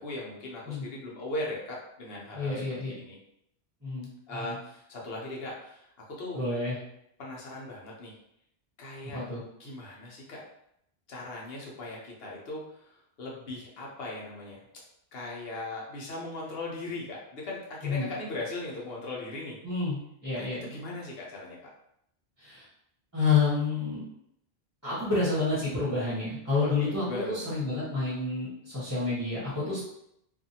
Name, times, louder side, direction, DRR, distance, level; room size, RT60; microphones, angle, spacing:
voice 1, 0.0-3.2 4.3-6.5 7.2-8.1 8.8-9.2 9.6-10.4 11.1-14.6 15.1-19.6 20.3-21.7 26.6-27.4, left 2 dB, 70° left, -3 dB, 1.0 m, -39 dB
voice 2, 2.3-2.9 3.8-4.5 6.3-6.8 9.1-9.4 17.8-18.1 19.6-20.6 22.4-22.6 23.1-24.0 24.8-29.8, left 4 dB, 15° right, -9 dB, 1.1 m, -29 dB
2.6 x 2.5 x 2.7 m, 0.75 s
omnidirectional pair, 1.1 m